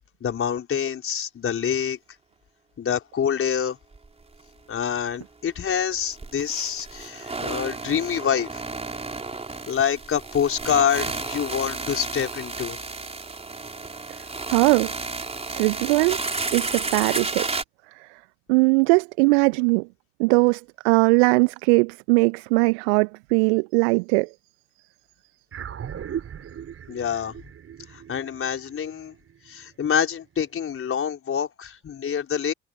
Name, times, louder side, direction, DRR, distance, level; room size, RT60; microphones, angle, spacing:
voice 1, 0.2-2.0 2.8-3.8 4.7-8.6 9.7-12.8 26.9-27.4 27.9-29.1 29.5-32.5, left 8 dB, 40° left, 4.7 m, -26 dB
sound 1, 3.9-4.1 4.3-4.4 6.0-17.6, right 3 dB, 20° right, 4.4 m, -32 dB
voice 2, 14.5-14.9 15.5-16.2 16.5-17.5 18.5-19.9 20.2-24.3, right 30 dB, 65° right, 1.3 m, -20 dB
sound 2, 25.5-30.1, right 9 dB, 45° right, 6.3 m, -38 dB
figure-of-eight pair, 50°, 33 cm